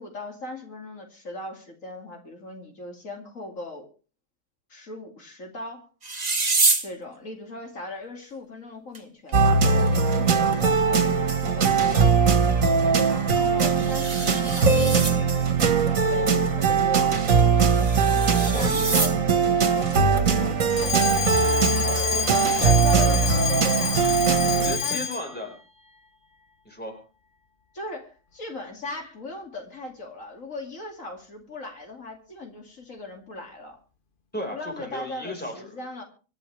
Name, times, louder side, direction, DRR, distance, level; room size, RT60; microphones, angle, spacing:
voice 1, 0.0-3.9 4.7-5.9 6.8-9.6 10.0-12.3 13.0-17.2 18.3-21.3 21.8-24.2 24.8-25.2 27.7-33.8 34.5-36.0, left 2 dB, 75° left, 2 dB, 2.9 m, -38 dB
sound 1, 6.0-6.9 8.9-9.0 9.3-9.4 9.9-10.0 13.4-15.2 17.4-19.2 21.5-21.9, right 3 dB, 30° right, 1.6 m, -27 dB
sound 2, 9.3-24.8, right 5 dB, 75° right, 2.0 m, -21 dB
voice 2, 18.5-18.9 24.5-25.6 26.6-27.0 34.3-35.7, left 1 dB, 5° left, 2 dB, 4.7 m, -34 dB
Alarm, 20.7-25.3, left 7 dB, 40° left, 1.3 m, -28 dB
25.5 x 11.0 x 3.4 m, 0.36 s
omnidirectional pair, 1.4 m